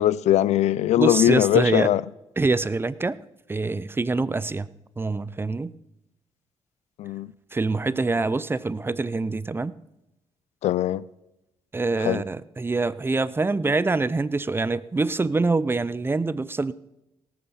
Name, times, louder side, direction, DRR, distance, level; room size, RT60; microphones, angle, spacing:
voice 1, 0.0-2.0 7.0-7.3 10.6-11.0 12.0-12.2, left 13 dB, 80° left, 0.4 m, -20 dB
voice 2, 1.0-1.9 2.4-3.2 3.5-4.7 5.0-5.7 7.5-9.7 11.7-16.7, right 3 dB, 20° right, 0.5 m, -25 dB
18.0 x 8.6 x 5.7 m
cardioid pair, 90°, 11 cm